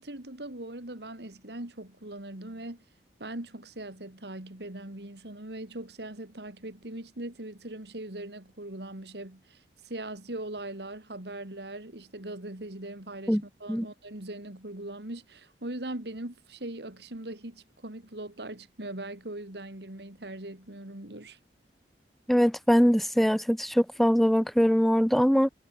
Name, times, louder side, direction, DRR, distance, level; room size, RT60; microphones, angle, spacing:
voice 1, 0.0-2.8 3.2-21.4, right 1 dB, 75° right, 2.8 m, -40 dB
voice 2, 22.3-25.5, equal, ahead, 0.6 m, -22 dB
head